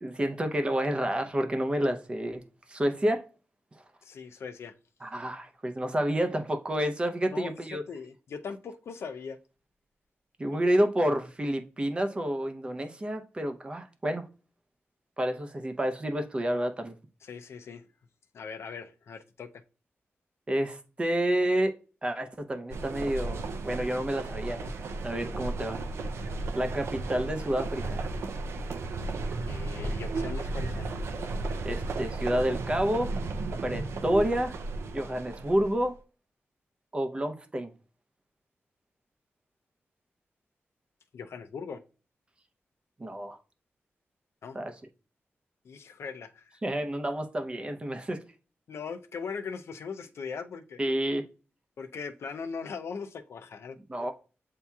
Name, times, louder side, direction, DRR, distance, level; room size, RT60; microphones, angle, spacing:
voice 1, 0.0-2.4 2.7-3.2 5.0-7.8 10.4-14.2 15.2-16.9 20.5-21.7 22.0-24.7 25.0-25.8 26.5-28.0 31.6-33.1 33.6-34.6 34.9-35.9 36.9-37.7 43.0-43.4 44.5-44.7 46.6-48.2 50.8-51.2 53.9-54.1, right 1 dB, 25° right, 0.6 m, -29 dB
voice 2, 4.0-4.7 7.3-9.4 10.5-10.6 17.2-17.8 18.3-19.6 29.5-30.9 41.1-41.8 44.4-44.6 45.6-46.6 48.7-50.8 51.8-53.8, left 5 dB, 80° left, 0.5 m, -40 dB
sound 1, 22.7-35.8, right 3 dB, 80° right, 0.4 m, -34 dB
8.2 x 2.8 x 2.3 m
wide cardioid pair, 170°, 4 cm